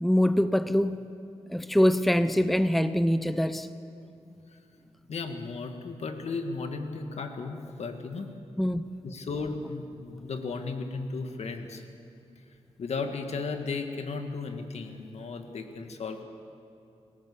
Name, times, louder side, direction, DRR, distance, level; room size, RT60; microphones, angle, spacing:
voice 1, 0.0-1.1 1.5-3.7 8.6-8.9, equal, ahead, 12 dB, 0.6 m, -24 dB
voice 2, 5.1-8.3 9.0-11.8 12.8-16.2, left 4 dB, 70° left, 6 dB, 1.9 m, -35 dB
25.0 x 17.5 x 7.0 m, 2.7 s
wide cardioid pair, 105°, 11 cm